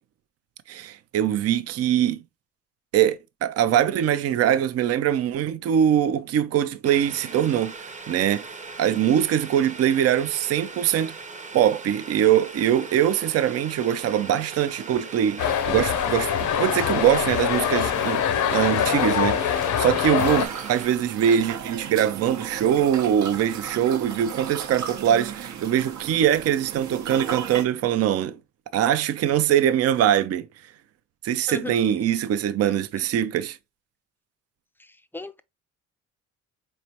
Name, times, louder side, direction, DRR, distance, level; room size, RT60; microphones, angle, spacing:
voice 1, 0.7-2.2 2.9-7.7 8.1-8.4 8.8-11.1 11.5-18.2 18.5-28.4 28.7-30.5 31.2-33.6, right 10 dB, 55° right, 0.5 m, -22 dB
Boiling, 6.8-20.9, right 4 dB, 25° right, 0.8 m, -40 dB
sound 1, 15.4-20.5, left 9 dB, 75° left, 0.7 m, -24 dB
sound 2, 20.2-27.6, right 8 dB, 70° right, 0.9 m, -35 dB
voice 2, 31.5-31.8 32.6-33.1 34.8-35.4, left 2 dB, 5° left, 0.4 m, -38 dB
4.2 x 3.2 x 2.8 m
cardioid pair, 90°, 30 cm